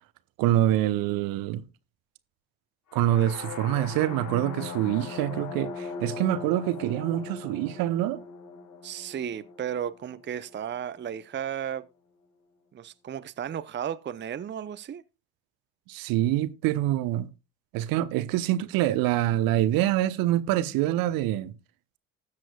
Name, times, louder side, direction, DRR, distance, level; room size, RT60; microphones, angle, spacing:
voice 1, 0.4-1.6 2.9-8.2 15.9-17.3 17.7-21.5, right 13 dB, 60° right, 1.1 m, -25 dB
sound 1, 2.9-10.8, left 5 dB, 50° left, 1.9 m, -40 dB
voice 2, 8.8-11.8 12.7-15.0, right 9 dB, 30° right, 0.7 m, -34 dB
20.0 x 7.5 x 2.3 m
figure-of-eight pair, 55°, 39 cm